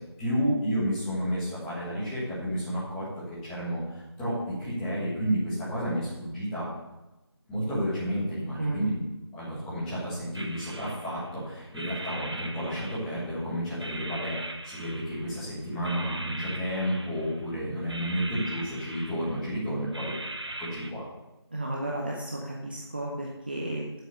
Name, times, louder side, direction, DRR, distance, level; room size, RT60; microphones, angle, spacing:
voice 1, 0.2-3.0 3.4-6.7 7.5-9.0 9.3-20.1 20.6-21.0, equal, 5° left, -12 dB, 1.6 m, -31 dB
voice 2, 8.6-8.9 21.5-24.0, right 1 dB, 20° right, -2 dB, 0.8 m, -33 dB
sound 1, 10.3-11.4 11.7-13.4 13.8-15.5 15.8-17.5 17.9-19.5 19.9-20.9, right 2 dB, 70° right, 1.3 m, -40 dB
9.1 x 7.6 x 6.8 m, 1.0 s
figure-of-eight pair, 170°, 14 cm